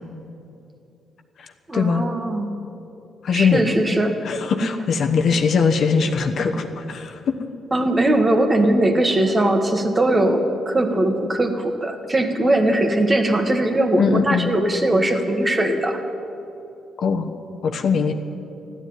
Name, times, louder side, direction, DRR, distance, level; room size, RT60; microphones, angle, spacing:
voice 1, 1.7-2.6 3.3-4.2 7.7-16.0, right 1 dB, 25° right, 5 dB, 1.6 m, -20 dB
voice 2, 3.2-3.6 4.2-7.3 14.0-14.6 17.0-17.3 17.6-18.1, left 5 dB, 60° left, 5 dB, 1.2 m, -21 dB
14.0 x 9.5 x 9.7 m, 2.8 s
cardioid pair, 90°, 0 cm